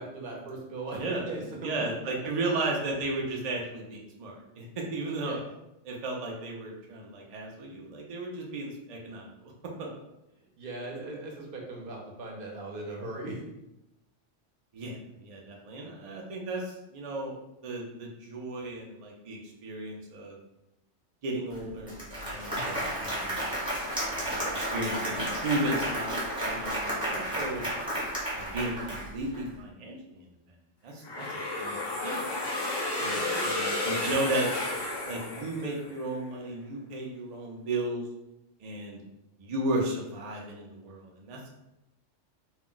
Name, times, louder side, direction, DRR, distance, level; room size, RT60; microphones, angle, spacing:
voice 1, 0.0-1.9 2.2-2.3 5.2-5.5 10.4-13.4 22.5-22.8 24.4-24.6 32.9-34.3, right 2 dB, 55° right, -1 dB, 0.7 m, -39 dB
voice 2, 1.6-5.4 5.8-9.5 9.8-9.9 14.7-17.4 17.6-20.4 21.2-23.6 24.2-26.2 26.4-27.6 28.3-30.3 30.8-31.3 31.6-32.2 33.0-34.5 35.0-38.1 38.6-39.0 39.4-41.5, right 2 dB, 75° right, -1 dB, 0.3 m, -34 dB
Applause, 21.5-21.6 21.9-29.4, right 1 dB, 5° right, 0.8 m, -32 dB
sound 1, 31.0-36.0, left 2 dB, 35° left, 0.4 m, -32 dB
2.3 x 2.1 x 3.7 m, 0.89 s
omnidirectional pair, 1.3 m